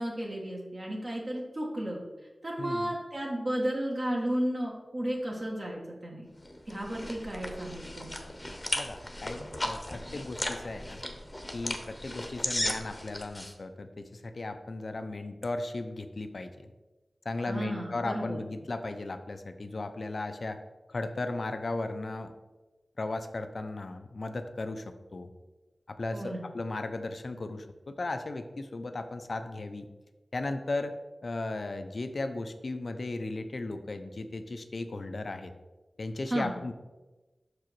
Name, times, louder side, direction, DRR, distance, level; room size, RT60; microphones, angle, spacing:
voice 1, 0.0-2.0 2.4-6.3 6.7-8.2 17.5-18.4 26.1-26.5 36.3-36.6, right 1 dB, 45° right, -3 dB, 1.4 m, -33 dB
voice 2, 2.6-3.0 8.7-11.0 11.5-16.7 17.3-20.6 20.9-22.3 23.0-25.3 25.9-29.9 30.3-30.9 31.2-35.5 36.0-36.7, left 2 dB, 60° left, 8 dB, 0.5 m, -36 dB
sound 1, 6.4-13.5, left 1 dB, 20° left, 0.8 m, -36 dB
6.1 x 4.8 x 4.5 m, 1.1 s
wide cardioid pair, 75°, 0 cm